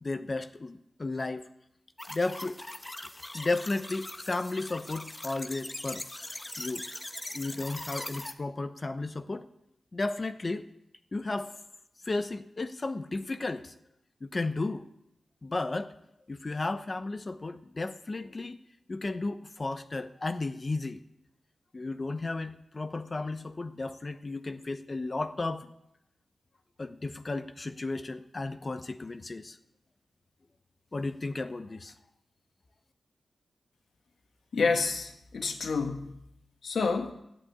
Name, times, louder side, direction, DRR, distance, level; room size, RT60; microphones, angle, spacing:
voice 1, 0.0-1.4 2.1-2.6 3.3-6.0 6.6-6.8 7.3-9.5 9.9-10.7 11.1-11.6 12.0-13.7 14.2-14.9 15.4-15.9 16.3-18.6 18.9-21.0 21.7-25.7 26.8-29.6 30.9-31.9, left 2 dB, 40° left, 1.0 m, -34 dB
sound 1, 2.0-8.3, left 1 dB, 20° left, 1.2 m, -41 dB
voice 2, 34.5-36.2 36.6-37.1, left 4 dB, 75° left, 1.9 m, -29 dB
13.5 x 11.5 x 8.7 m
cardioid pair, 70°, 0 cm